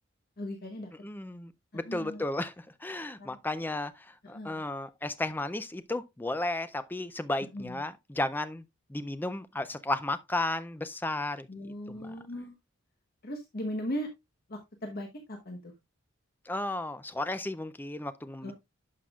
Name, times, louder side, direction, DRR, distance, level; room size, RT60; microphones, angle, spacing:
voice 1, 0.4-0.9 1.7-2.2 3.2-3.4 4.3-4.6 7.5-7.8 11.5-12.6 13.2-14.1 14.5-15.7 18.4-18.5, equal, 45° left, 1.0 m, -38 dB
voice 2, 1.0-8.6 8.9-12.1 16.5-18.5, left 2 dB, 10° left, 0.4 m, -34 dB
11.0 x 5.8 x 2.3 m
head